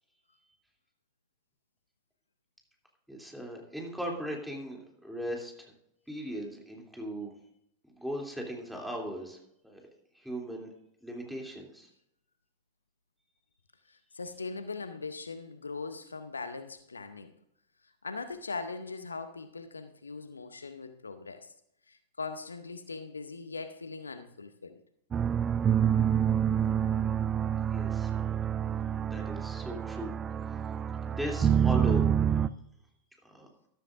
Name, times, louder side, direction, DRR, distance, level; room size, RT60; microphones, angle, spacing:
voice 1, 3.1-5.7 6.1-7.3 8.0-9.4 9.6-9.8 10.1-10.7 11.0-11.9 27.7-28.4 29.0-30.1 31.1-32.2 32.4-32.5 33.2-33.5, equal, ahead, 0 dB, 2.9 m, -38 dB
voice 2, 13.9-17.3 18.0-21.5 21.9-24.8, left 4 dB, 75° left, 11 dB, 0.7 m, -40 dB
sound 1, 25.1-32.5, right 8 dB, 25° right, 0.4 m, -27 dB
13.5 x 13.0 x 2.6 m, 0.77 s
figure-of-eight pair, 90°, 0 cm